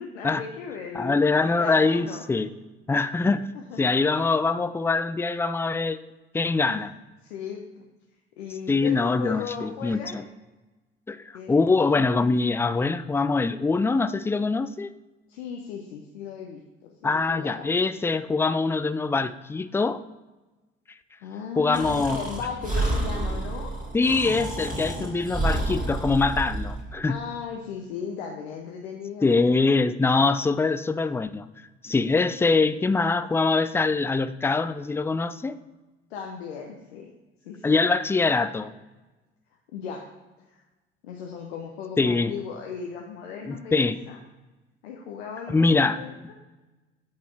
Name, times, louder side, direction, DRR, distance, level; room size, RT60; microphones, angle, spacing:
voice 1, 0.0-2.2 3.2-4.3 6.7-6.9 7.2-7.8 8.4-10.3 11.3-11.6 15.3-17.7 21.2-23.7 24.9-25.2 27.1-29.5 32.3-32.7 36.1-37.1 37.4-37.8 39.7-40.1 40.5-40.6 41.0-44.2 44.8-46.3, left 6 dB, 85° left, 1 dB, 0.7 m, -37 dB
voice 2, 0.9-2.5 2.9-3.4 3.8-6.0 6.3-6.9 8.7-10.0 11.1-14.9 17.0-20.0 21.6-22.2 23.9-27.2 29.2-31.5 31.8-35.6 37.6-38.7 42.0-42.3 43.4-44.0 45.5-46.0, left 3 dB, 10° left, 13 dB, 0.3 m, -23 dB
Breathing, 21.7-26.8, right 2 dB, 25° right, 1.9 m, -29 dB
8.4 x 4.2 x 4.5 m, 1.1 s
hypercardioid pair, 55°, 31 cm